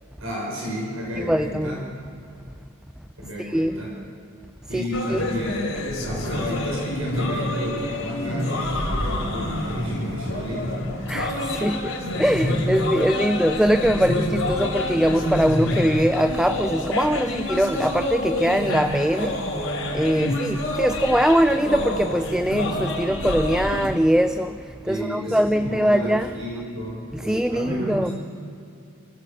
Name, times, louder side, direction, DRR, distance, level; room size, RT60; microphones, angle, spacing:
voice 1, 0.2-1.8 3.2-3.9 4.7-5.7 6.0-10.9 20.2-20.4 24.8-28.1, equal, 80° right, 6.3 m, -31 dB
voice 2, 1.2-1.8 3.4-3.8 4.7-4.8 5.1-5.2 11.1-19.7 19.9-26.3 27.1-28.1, equal, 5° right, 0.4 m, -22 dB
sound 1, 4.9-23.9, left 1 dB, 75° left, 4.7 m, -27 dB
28.0 x 15.5 x 6.8 m
head